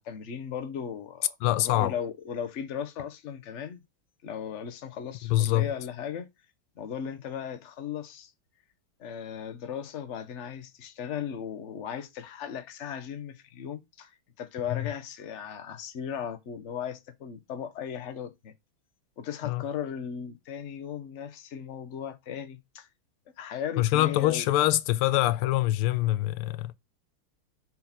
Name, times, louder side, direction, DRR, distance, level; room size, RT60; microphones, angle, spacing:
voice 1, 0.0-3.8 4.2-6.3 6.8-8.3 9.0-18.5 19.2-22.9 23.4-24.5, left 8 dB, 45° left, 1.0 m, -37 dB
voice 2, 1.4-1.9 5.2-5.7 14.7-14.8 19.4-19.6 23.8-26.7, left 15 dB, 90° left, 1.5 m, -24 dB
6.4 x 4.3 x 4.1 m
omnidirectional pair, 2.3 m